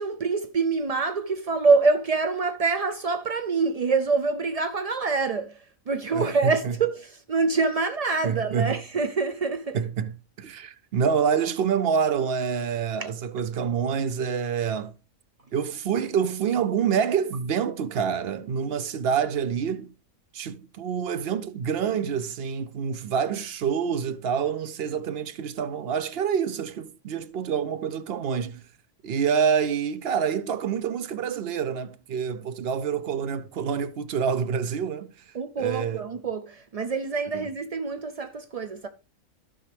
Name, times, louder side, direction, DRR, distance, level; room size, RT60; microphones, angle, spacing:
voice 1, 0.0-9.8 13.0-13.1 35.3-38.9, right 4 dB, 80° right, 0.3 m, -26 dB
voice 2, 6.1-6.7 8.2-8.7 9.7-10.1 10.4-14.9 15.5-19.9 20.3-28.6 29.0-35.1 35.6-36.0 37.3-37.5, right 7 dB, 55° right, 0.7 m, -27 dB
15.0 x 5.5 x 3.3 m
omnidirectional pair, 1.4 m